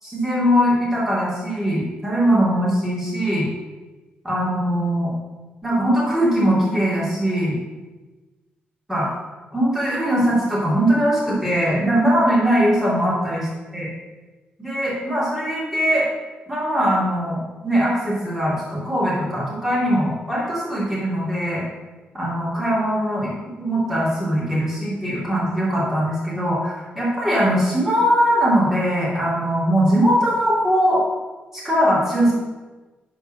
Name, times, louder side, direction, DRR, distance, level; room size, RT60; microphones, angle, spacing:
voice 1, 0.0-3.5 4.2-5.1 5.6-7.6 8.9-9.1 9.5-13.5 13.7-13.9 14.6-16.1 16.5-21.6 22.1-23.3 23.6-31.0 31.5-32.3, equal, 10° right, -8 dB, 2.8 m, -20 dB
11.0 x 4.5 x 6.4 m, 1.2 s
wide cardioid pair, 170°, 4 cm